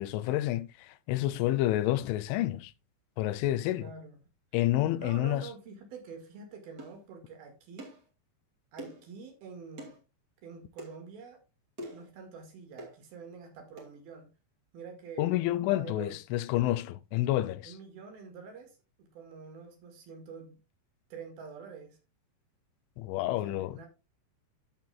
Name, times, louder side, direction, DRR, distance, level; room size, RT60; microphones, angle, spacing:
voice 1, 0.0-2.7 3.2-3.9 4.5-5.5 15.2-17.7 23.0-23.8, left 14 dB, 90° left, 3.1 m, -29 dB
voice 2, 3.8-4.2 5.0-7.9 8.7-9.9 10.4-11.4 11.9-14.3 14.7-16.2 17.7-20.6 21.1-22.0 23.5-23.9, right 5 dB, 60° right, 3.4 m, -47 dB
sound 1, 6.8-7.0 7.8-8.0 8.8-9.1 9.8-10.0 10.8-10.9 11.8-12.1 12.8-13.0 13.8-13.9, equal, 30° right, 2.2 m, -44 dB
14.5 x 6.0 x 2.4 m
omnidirectional pair, 5.3 m